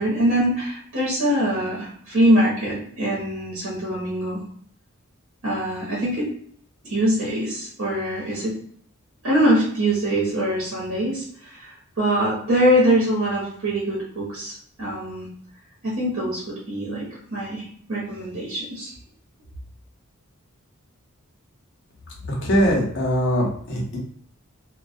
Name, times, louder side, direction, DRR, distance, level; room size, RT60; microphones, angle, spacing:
voice 1, 0.0-4.4 5.4-6.3 6.8-8.6 9.2-11.2 11.6-11.7 12.0-15.3 15.8-18.9, right 1 dB, 70° right, -6 dB, 0.9 m, -23 dB
voice 2, 22.4-24.0, equal, 55° left, -2 dB, 0.7 m, -21 dB
2.2 x 2.2 x 2.5 m, 0.62 s
head